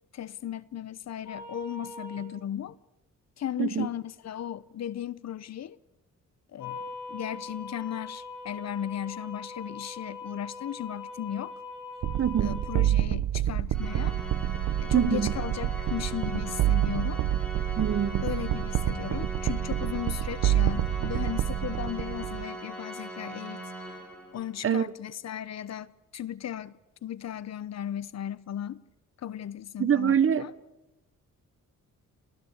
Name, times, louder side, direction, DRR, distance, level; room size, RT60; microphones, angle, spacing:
voice 1, 0.1-2.7 3.4-5.8 6.5-6.8 7.1-11.5 12.4-14.2 14.8-17.2 18.2-23.6 24.3-26.7 27.0-28.8 29.2-30.5, left 10 dB, 55° left, 0.7 m, -36 dB
sound 1, 1.3-2.2 6.6-12.9, left 3 dB, 75° left, 6.2 m, -41 dB
sound 2, 12.0-22.4, right 12 dB, 80° right, 0.8 m, -28 dB
voice 2, 12.2-12.6 14.9-15.3 17.8-18.3 24.6-24.9 29.8-30.5, right 8 dB, 45° right, 0.9 m, -25 dB
Organ, 13.7-24.6, right 2 dB, 5° left, 5.2 m, -40 dB
27.5 x 15.5 x 8.7 m
cardioid pair, 125°, 32 cm